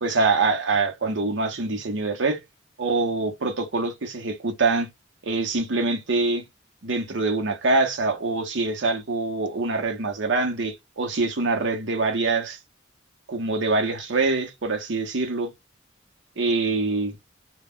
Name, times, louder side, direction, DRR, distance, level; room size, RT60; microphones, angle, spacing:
voice 1, 0.0-2.4 2.8-4.9 5.2-6.4 6.8-12.6 13.3-15.5 16.4-17.2, right 3 dB, 80° right, 0.8 m, -24 dB
2.2 x 2.2 x 3.4 m
head